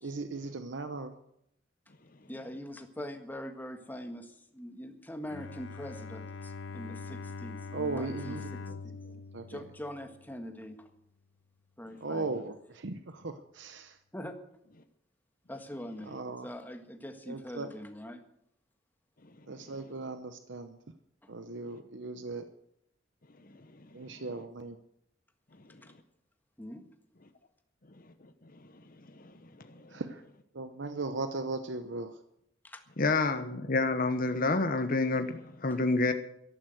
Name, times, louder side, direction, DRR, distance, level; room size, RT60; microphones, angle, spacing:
voice 1, 0.0-1.1 7.7-8.8 9.1-9.6 12.0-13.9 16.1-16.5 17.3-17.7 19.5-20.8 21.3-22.4 23.9-24.8 29.9-30.2 30.5-32.1, right 3 dB, 75° right, 9 dB, 0.9 m, -38 dB
voice 2, 2.3-8.9 9.5-10.9 11.8-12.4 14.1-14.3 15.5-18.2 25.8-25.9 26.6-26.8 32.6-32.8 35.7-35.8, equal, 10° left, 5 dB, 1.6 m, -43 dB
Bowed string instrument, 5.3-10.6, left 4 dB, 85° left, 0.7 m, -43 dB
voice 3, 33.0-36.1, left 3 dB, 50° left, 8 dB, 1.0 m, -28 dB
13.5 x 11.5 x 7.8 m, 0.75 s
head